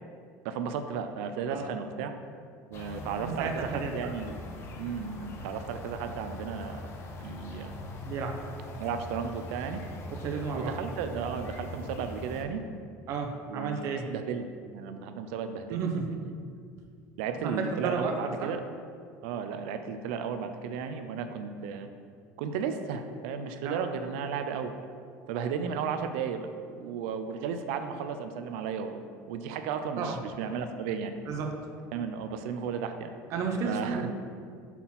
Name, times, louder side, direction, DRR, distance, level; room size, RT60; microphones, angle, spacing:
voice 1, 0.4-2.1 2.7-4.5 4.7-6.9 7.2-7.8 8.8-9.8 10.5-12.6 13.5-13.8 14.1-16.1 17.2-18.6 19.2-21.9 22.4-24.7 25.3-26.5 26.7-31.1 31.9-33.1 33.7-34.0, right 6 dB, 85° right, 8 dB, 0.5 m, -34 dB
sound 1, 2.7-12.4, left 1 dB, 45° left, 0.8 m, -42 dB
voice 2, 3.2-4.1 8.1-8.4 10.1-10.7 13.1-14.1 15.7-16.2 17.4-18.5 23.6-23.8 30.0-30.2 31.3-31.6 33.3-34.1, right 5 dB, 55° right, 3 dB, 0.9 m, -32 dB
5.8 x 4.1 x 5.9 m, 2.1 s
cardioid pair, 135°, 6 cm